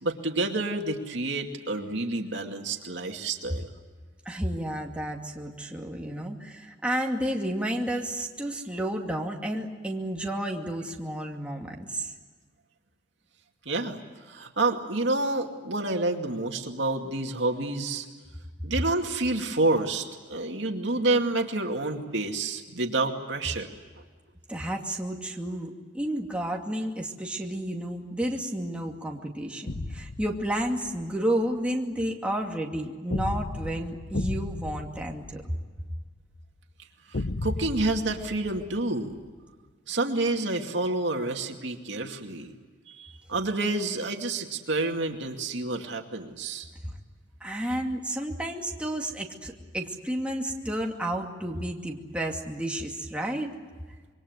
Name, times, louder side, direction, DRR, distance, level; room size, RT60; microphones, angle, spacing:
voice 1, 0.0-3.7 13.7-14.0 14.3-18.1 18.6-23.7 37.4-39.2 39.9-42.5 42.9-46.7, right 2 dB, 70° right, 3 dB, 2.4 m, -28 dB
voice 2, 4.3-12.1 24.5-35.4 46.8-46.9 47.4-53.5, right 1 dB, 5° right, 0 dB, 2.5 m, -31 dB
sound 1, 29.7-31.0 33.1-36.1 37.1-39.3, left 2 dB, 65° left, 0.9 m, -34 dB
26.5 x 23.5 x 8.1 m, 1.5 s
head